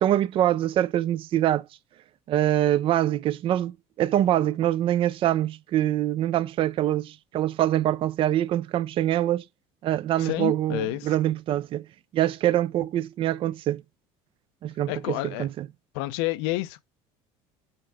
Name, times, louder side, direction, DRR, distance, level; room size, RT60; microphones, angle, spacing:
voice 1, 0.0-1.7 2.3-9.4 9.8-11.9 12.1-13.8 14.6-15.7, right 12 dB, 45° right, 0.5 m, -24 dB
voice 2, 10.2-11.1 14.9-15.5 15.9-16.8, left 18 dB, 80° left, 0.7 m, -29 dB
5.9 x 4.6 x 4.9 m
supercardioid pair, 120°, 13 cm